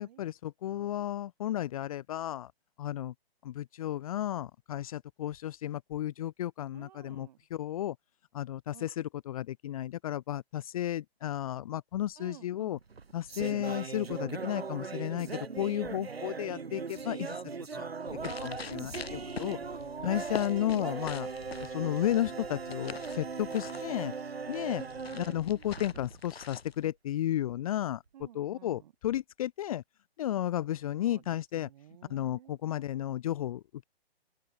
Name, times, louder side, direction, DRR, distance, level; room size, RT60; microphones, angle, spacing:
voice 1, 0.0-2.5 2.8-3.1 3.4-8.0 8.3-12.8 13.1-17.9 18.2-19.6 20.0-21.3 21.6-24.1 24.5-24.8 25.1-28.0 28.3-29.8 30.2-31.7 32.1-33.8, left 12 dB, 35° left, 1.1 m, -33 dB
voice 2, 0.6-1.1 6.7-7.4 8.7-8.9 12.2-12.8 18.6-19.8 23.7-25.7 28.1-28.9 31.0-32.6, right 12 dB, 40° right, 7.6 m, -54 dB
sound 1, 12.7-26.2, right 5 dB, 70° right, 2.8 m, -39 dB
sound 2, 18.1-26.9, left 5 dB, 70° left, 2.3 m, -45 dB
open air
figure-of-eight pair, 130°, 32 cm